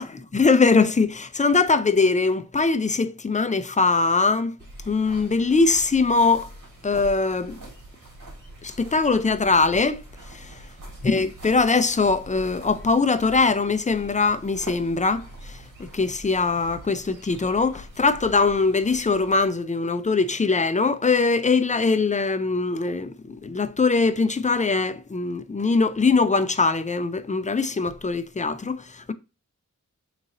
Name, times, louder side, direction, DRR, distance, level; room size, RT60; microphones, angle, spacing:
voice 1, 0.3-4.5 4.9-6.5 6.8-7.6 8.6-10.0 10.3-10.5 11.0-29.1, left 4 dB, 25° left, 0.4 m, -22 dB
sound 1, 4.6-19.5, right 1 dB, 65° right, 1.9 m, -44 dB
3.7 x 3.1 x 3.9 m
wide cardioid pair, 70°, 33 cm